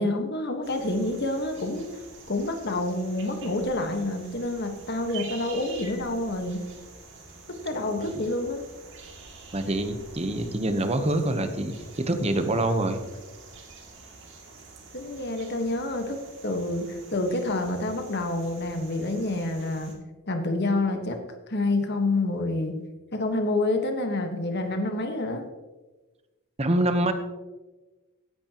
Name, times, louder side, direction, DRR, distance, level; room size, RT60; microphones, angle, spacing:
voice 1, 0.0-2.0 2.3-6.6 7.5-8.6 14.9-19.9 20.3-21.2 21.5-22.8 23.1-25.4, left 2 dB, 50° left, 5 dB, 1.5 m, -28 dB
sound 1, 0.6-19.9, right 4 dB, 55° right, 2.6 m, -47 dB
voice 2, 7.7-8.2 9.5-13.0 26.6-27.1, right 1 dB, 30° right, 7 dB, 1.0 m, -26 dB
15.5 x 10.5 x 3.0 m, 1.2 s
head